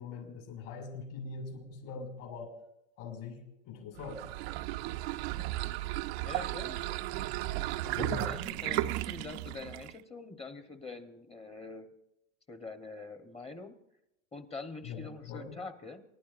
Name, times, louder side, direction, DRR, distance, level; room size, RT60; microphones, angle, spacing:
voice 1, 0.0-2.5 3.0-4.2 8.0-8.3 14.8-15.6, left 5 dB, 60° left, 2 dB, 6.3 m, -42 dB
sound 1, 4.0-10.0, right 17 dB, 60° right, 0.7 m, -35 dB
voice 2, 6.2-7.1 7.8-11.9 12.5-13.7 14.3-16.0, left 3 dB, 15° left, 8 dB, 1.2 m, -44 dB
28.5 x 11.5 x 2.6 m, 0.85 s
hypercardioid pair, 110°, 38 cm